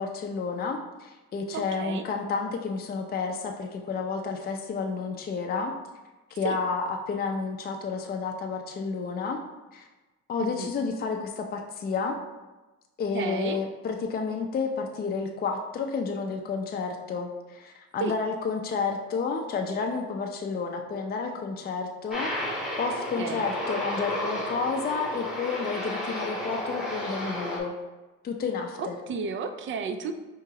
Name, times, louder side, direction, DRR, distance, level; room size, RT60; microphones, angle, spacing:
voice 1, 0.0-5.7 6.3-9.4 9.7-9.8 10.3-12.2 13.0-27.7 28.2-29.0, left 5 dB, 30° left, 3 dB, 0.4 m, -31 dB
voice 2, 1.5-2.1 6.4-6.6 10.4-10.7 13.1-13.6 18.0-18.2 23.2-23.5 28.8-30.1, right 5 dB, 40° right, 8 dB, 0.4 m, -32 dB
Aircraft, 22.1-27.6, left 1 dB, ahead, 1.0 m, -32 dB
4.7 x 2.9 x 2.8 m, 1.1 s
cardioid pair, 90°, 30 cm